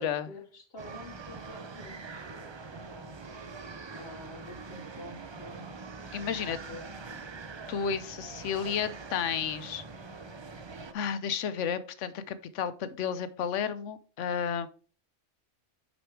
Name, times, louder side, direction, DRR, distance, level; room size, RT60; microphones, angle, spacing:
voice 1, 0.0-3.3 3.9-5.7 6.0-6.9, left 1 dB, 60° left, 5 dB, 1.4 m, -48 dB
sound 1, 0.8-10.9, right 4 dB, 40° right, 0.4 m, -44 dB
voice 2, 6.1-6.6 7.7-9.8 10.9-14.7, left 7 dB, 85° left, 13 dB, 1.0 m, -32 dB
6.2 x 5.2 x 4.7 m, 0.40 s
omnidirectional pair, 1.2 m